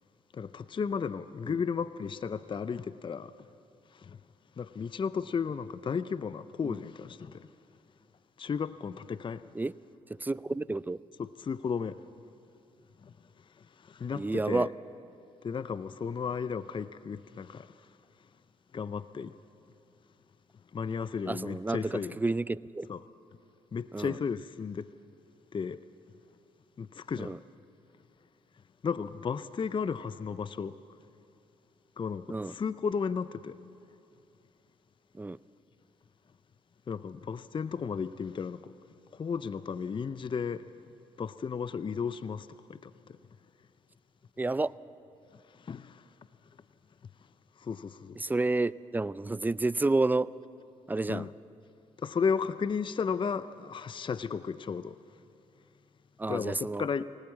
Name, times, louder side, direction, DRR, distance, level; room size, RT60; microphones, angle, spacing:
voice 1, 0.3-3.3 3.9-4.2 4.6-7.5 8.4-9.4 11.2-12.0 13.0-13.1 13.8-14.7 15.4-17.7 18.7-19.3 20.7-22.2 22.9-23.0 23.7-24.9 25.5-25.8 26.8-27.3 28.8-30.7 32.0-33.6 36.9-38.7 39.1-40.7 41.2-42.9 45.6-46.0 47.6-48.2 51.1-51.3 52.0-54.9 56.3-57.0, left 6 dB, 35° left, 0.6 m, -34 dB
voice 2, 10.1-11.0 14.1-14.7 21.3-22.9 23.9-24.2 27.2-27.4 32.3-32.5 35.1-35.4 44.4-44.7 48.2-50.3 50.9-51.3 56.2-56.9, right 2 dB, 15° right, 0.5 m, -30 dB
24.0 x 18.5 x 7.3 m
supercardioid pair, 60°, 14 cm